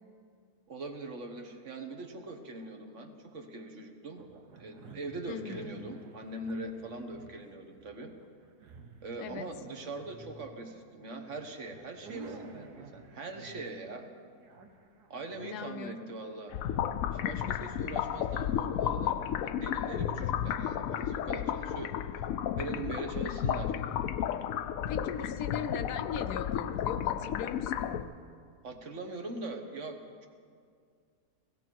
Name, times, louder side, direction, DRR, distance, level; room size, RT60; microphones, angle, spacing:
voice 1, 0.7-4.2 4.6-8.2 9.0-14.1 15.1-16.5 17.0-21.9 22.6-23.7 28.6-30.3, right 2 dB, 55° right, 5 dB, 1.5 m, -42 dB
sound 1, 4.2-16.8, right 4 dB, 85° right, 1.7 m, -52 dB
voice 2, 5.3-5.8 9.2-9.5 15.4-16.1 24.9-28.1, left 7 dB, 85° left, 9 dB, 1.3 m, -39 dB
sound 2, 16.5-28.0, left 9 dB, 70° left, 0.9 m, -33 dB
17.0 x 17.0 x 4.6 m, 2.1 s
omnidirectional pair, 1.6 m